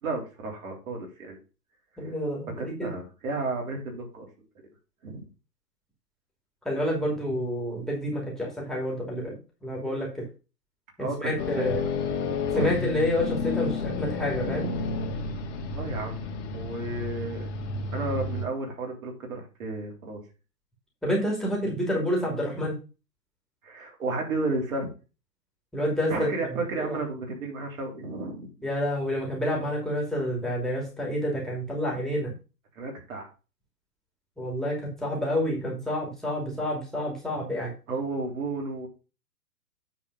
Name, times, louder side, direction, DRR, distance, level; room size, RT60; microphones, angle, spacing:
voice 1, 0.0-1.4 2.0-2.1 2.6-4.3 5.0-5.3 11.0-11.8 12.5-12.8 14.5-14.6 15.7-16.2 16.5-17.5 17.9-20.2 23.6-24.9 26.1-28.5 30.2-30.3 32.8-33.3 37.9-38.9, right 2 dB, 55° right, 1 dB, 3.6 m, -32 dB
voice 2, 2.0-2.9 6.6-9.3 9.6-10.3 11.0-11.8 12.6-14.7 21.0-22.7 25.7-27.0 28.6-32.3 34.4-37.7, equal, ahead, -3 dB, 2.6 m, -29 dB
sound 1, 11.4-18.5, left 4 dB, 45° left, 2.0 m, -31 dB
9.5 x 4.3 x 5.4 m, 0.32 s
figure-of-eight pair, 120°, 48 cm